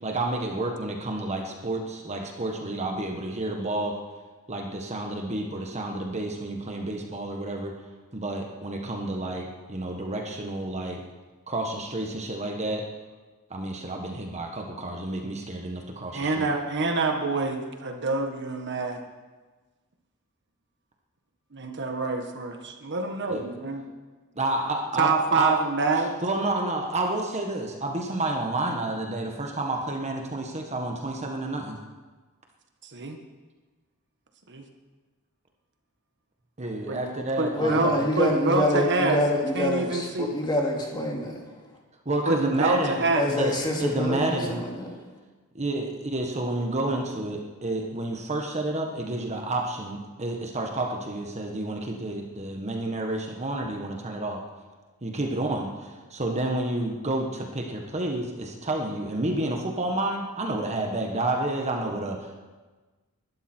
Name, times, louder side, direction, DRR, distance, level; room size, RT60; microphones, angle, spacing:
voice 1, 0.0-4.0 4.5-7.7 8.1-11.0 11.5-12.8 13.5-16.5 23.3-23.4 24.4-25.5 26.2-31.8 36.6-38.0 42.0-44.6 45.5-54.4 55.0-62.4, right 2 dB, 30° right, 2 dB, 1.4 m, -30 dB
voice 2, 16.1-19.0 21.5-23.8 25.0-26.1 32.8-33.2 34.5-34.6 36.9-37.1 37.4-39.2 39.5-40.3 42.3-43.3, right 3 dB, 55° right, 4 dB, 1.5 m, -26 dB
voice 3, 37.5-41.8 43.1-44.9, left 1 dB, 20° left, -1 dB, 2.6 m, -26 dB
21.0 x 12.0 x 4.5 m, 1.3 s
head